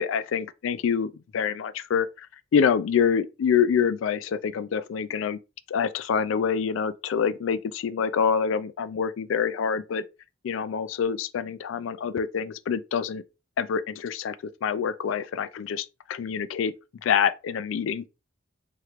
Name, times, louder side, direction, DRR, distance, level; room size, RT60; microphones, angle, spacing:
voice 1, 0.0-2.3 2.5-5.4 5.7-10.0 10.4-13.2 13.6-16.7 17.0-18.1, left 7 dB, 80° left, 0.3 m, -26 dB
3.0 x 2.9 x 2.4 m
head